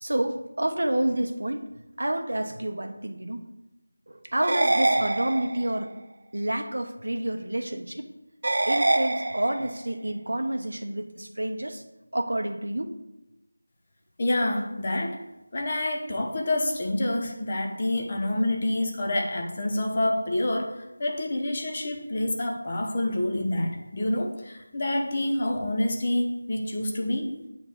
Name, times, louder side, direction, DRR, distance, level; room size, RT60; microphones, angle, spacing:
voice 1, 0.0-1.7 2.0-3.4 4.1-5.9 6.3-8.1 8.6-11.8 12.1-12.9, right 1 dB, 80° right, 6 dB, 1.1 m, -29 dB
sound 1, 4.4-5.8 8.4-9.8, right 2 dB, 45° right, 0.4 m, -25 dB
voice 2, 14.2-15.2 15.5-20.7 21.0-27.3, left 1 dB, 25° left, 2 dB, 0.9 m, -27 dB
8.8 x 4.5 x 7.0 m, 0.94 s
figure-of-eight pair, 175°, 0 cm